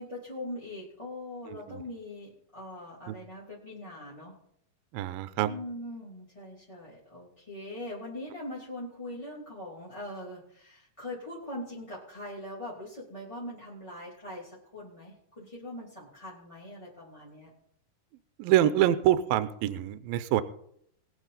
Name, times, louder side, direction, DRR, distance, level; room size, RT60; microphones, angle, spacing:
voice 1, 0.0-4.3 5.5-17.5, left 1 dB, 10° left, -6 dB, 2.3 m, -41 dB
voice 2, 1.5-1.8 3.1-3.2 4.9-5.5 18.4-20.4, right 12 dB, 80° right, 13 dB, 2.3 m, -26 dB
21.0 x 8.1 x 4.0 m, 0.70 s
omnidirectional pair, 4.6 m